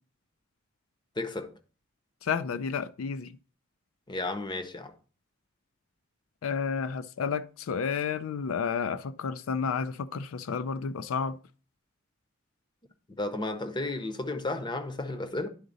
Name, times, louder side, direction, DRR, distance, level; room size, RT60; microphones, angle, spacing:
voice 1, 1.2-1.5 4.1-4.9 13.1-15.5, left 2 dB, 20° left, 0.7 m, -33 dB
voice 2, 2.2-3.3 6.4-11.4, left 6 dB, 80° left, 0.4 m, -31 dB
11.0 x 3.9 x 3.9 m
head